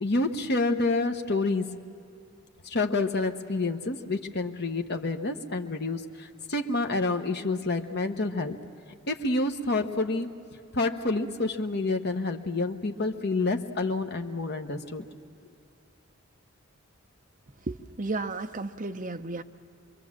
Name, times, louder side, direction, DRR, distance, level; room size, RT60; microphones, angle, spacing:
voice 1, 0.0-1.7 2.6-8.6 9.1-10.3 10.7-15.0, left 3 dB, 50° left, 5 dB, 1.1 m, -28 dB
voice 2, 17.7-19.4, right 3 dB, 35° right, 7 dB, 0.7 m, -33 dB
26.0 x 22.5 x 7.4 m, 2.6 s
head